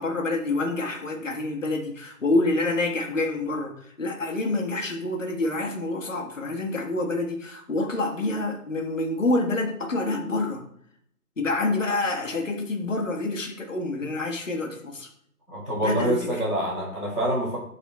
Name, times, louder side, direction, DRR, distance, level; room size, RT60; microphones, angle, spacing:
voice 1, 0.0-10.6 11.4-15.1 15.8-16.3, left 2 dB, 55° left, 2 dB, 1.6 m, -27 dB
voice 2, 15.5-17.6, right 1 dB, 5° left, -19 dB, 1.6 m, -26 dB
7.9 x 4.2 x 4.2 m, 0.69 s
figure-of-eight pair, 175°, 47 cm